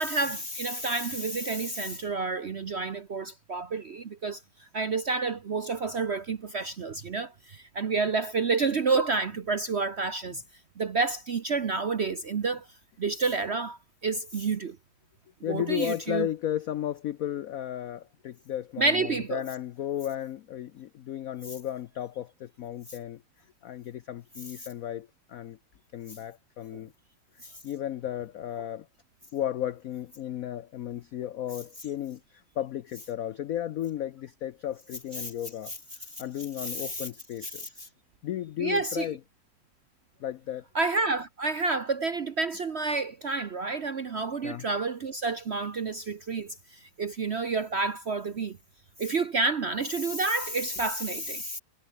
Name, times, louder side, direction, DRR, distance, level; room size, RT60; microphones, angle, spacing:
voice 1, 0.0-10.4 10.8-12.7 13.0-14.8 15.5-16.3 18.8-19.4 27.4-27.5 35.2-35.3 35.7-35.8 36.1-36.2 36.6-37.1 37.5-37.9 38.6-39.1 40.7-48.6 49.0-51.6, right 3 dB, 50° right, 0.8 m, -29 dB
voice 2, 15.4-23.2 23.6-25.6 25.9-26.9 27.6-28.9 29.3-35.7 36.2-37.9 38.2-39.2 40.2-40.6 44.4-44.7, left 11 dB, 80° left, 0.7 m, -34 dB
omnidirectional pair, 2.2 m